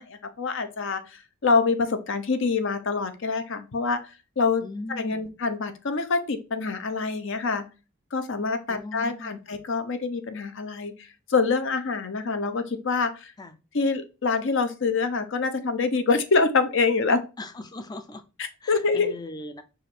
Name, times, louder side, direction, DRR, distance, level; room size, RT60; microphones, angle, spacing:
voice 1, 0.0-4.0 4.4-4.6 5.0-7.6 8.1-10.9 11.3-13.3 13.7-17.2 18.7-19.1, left 4 dB, 60° left, 0.6 m, -25 dB
voice 2, 4.6-5.3 8.7-9.4 13.4-13.6 17.4-18.2 18.6-19.6, left 2 dB, 20° left, 0.4 m, -39 dB
4.8 x 2.5 x 4.4 m
head